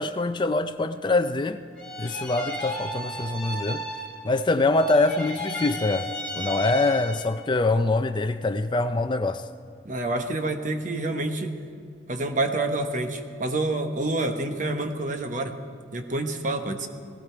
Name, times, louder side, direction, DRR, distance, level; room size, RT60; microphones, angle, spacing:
voice 1, 0.0-1.6 2.0-3.8 4.2-9.5, left 2 dB, 25° left, 0.4 m, -24 dB
sound 1, 1.8-4.4 4.7-7.4, equal, 5° left, 2.2 m, -34 dB
voice 2, 9.8-11.6 12.1-15.6 15.9-16.9, right 2 dB, 45° right, 1.1 m, -28 dB
18.5 x 16.5 x 4.5 m
head